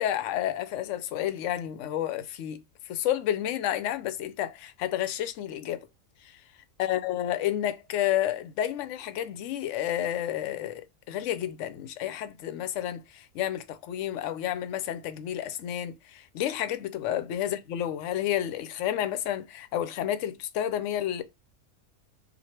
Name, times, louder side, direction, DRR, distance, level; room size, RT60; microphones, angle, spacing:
voice 1, 0.0-5.9 6.2-6.4 6.8-21.2, left 11 dB, 70° left, 0.8 m, -30 dB
3.2 x 2.5 x 4.3 m
omnidirectional pair, 1.5 m